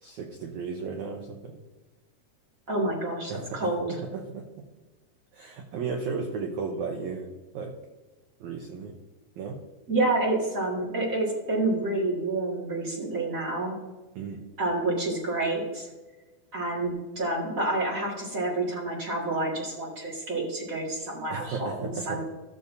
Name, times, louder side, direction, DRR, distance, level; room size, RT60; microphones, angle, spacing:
voice 1, 0.0-1.6 3.3-3.7 4.0-4.5 5.3-7.3 7.5-7.7 8.4-9.0 9.4-9.6 14.2-14.4 21.3-22.2, right 5 dB, 80° right, 3 dB, 1.6 m, -34 dB
voice 2, 2.7-4.0 9.9-13.8 14.6-15.9 16.5-22.2, right 2 dB, 35° right, -4 dB, 1.4 m, -28 dB
14.5 x 6.6 x 2.6 m, 1.2 s
omnidirectional pair, 4.5 m